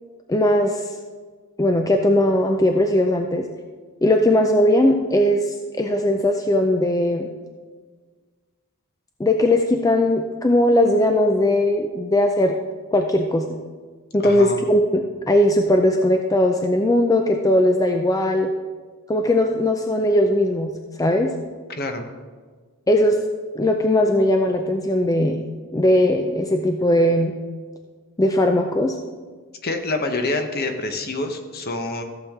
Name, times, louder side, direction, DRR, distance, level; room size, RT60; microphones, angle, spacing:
voice 1, 0.3-0.9 1.6-3.4 4.0-7.3 9.2-12.6 12.9-13.5 14.1-18.5 19.1-20.7 21.0-21.3 22.9-23.2 23.6-25.4 25.7-27.3 28.2-28.9, left 1 dB, 15° left, 4 dB, 0.4 m, -19 dB
voice 2, 14.2-14.6 21.7-22.1 29.6-32.0, left 2 dB, 45° left, 6 dB, 1.0 m, -26 dB
14.5 x 7.3 x 3.6 m, 1.5 s
head